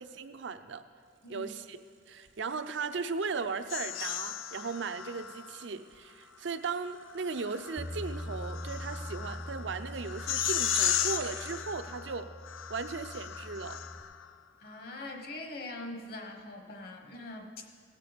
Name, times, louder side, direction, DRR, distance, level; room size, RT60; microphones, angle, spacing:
voice 1, 0.0-0.8 1.3-1.8 2.1-12.3 12.7-13.8, right 4 dB, 65° right, 9 dB, 0.6 m, -37 dB
sound 1, 1.0-11.7, right 7 dB, 80° right, 1.5 m, -53 dB
sound 2, 3.7-5.7 7.1-14.3, left 10 dB, 90° left, 0.4 m, -35 dB
Bass guitar, 7.8-14.0, equal, 10° left, 0.5 m, -43 dB
voice 2, 14.6-17.7, left 2 dB, 50° left, 3 dB, 1.2 m, -42 dB
18.0 x 6.7 x 5.1 m, 2.3 s
head